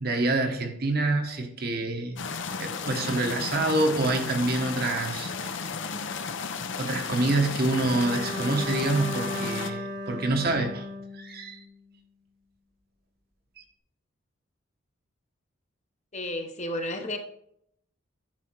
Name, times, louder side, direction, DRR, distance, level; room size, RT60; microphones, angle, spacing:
voice 1, 0.0-2.2 2.6-5.5 6.8-10.9 11.1-11.6, right 2 dB, 45° right, 1.1 m, -27 dB
sound 1, 2.2-9.7, left 5 dB, 60° left, 0.7 m, -34 dB
Bowed string instrument, 7.9-11.9, equal, 75° right, 2.5 m, -36 dB
voice 2, 16.1-17.2, left 1 dB, 35° left, 0.9 m, -32 dB
10.5 x 5.0 x 4.6 m
head